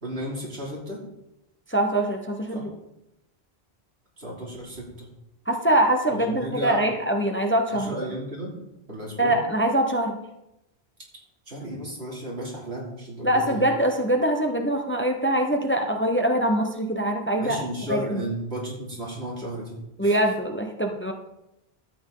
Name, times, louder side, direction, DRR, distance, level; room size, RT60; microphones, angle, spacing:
voice 1, 0.0-1.0 2.5-2.7 4.2-5.1 6.1-6.8 7.7-8.5 8.9-9.4 11.5-13.7 17.4-20.2, right 1 dB, 80° right, -3 dB, 3.3 m, -34 dB
voice 2, 1.7-2.7 5.5-8.0 9.2-10.2 13.2-17.6 17.9-18.2 20.0-21.1, right 1 dB, 10° left, 3 dB, 0.9 m, -23 dB
12.5 x 8.8 x 3.9 m, 0.88 s
omnidirectional pair, 1.1 m